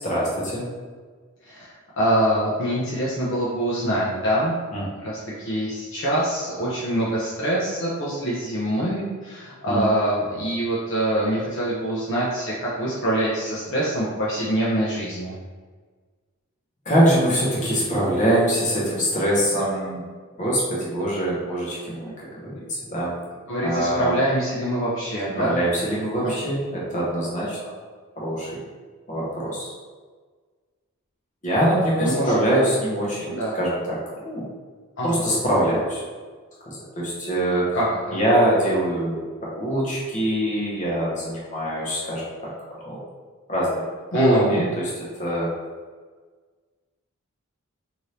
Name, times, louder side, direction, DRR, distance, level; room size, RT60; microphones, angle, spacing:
voice 1, 0.0-0.6 4.7-4.8 9.7-9.8 16.9-20.0 20.4-23.1 23.6-24.1 25.4-27.7 28.2-28.6 29.1-29.7 31.4-34.5 35.0-36.0 36.7-37.8 38.1-42.3 42.8-43.0 43.5-43.8 44.1-44.9 45.2-45.5, right 1 dB, 35° left, -6 dB, 0.9 m, -23 dB
voice 2, 1.4-4.5 5.0-15.3 23.5-25.6 32.0-32.7 33.3-33.6 35.0-35.1 37.7-38.2 44.1-44.7, right 1 dB, 55° left, -7 dB, 0.6 m, -24 dB
2.7 x 2.6 x 3.2 m, 1.5 s
head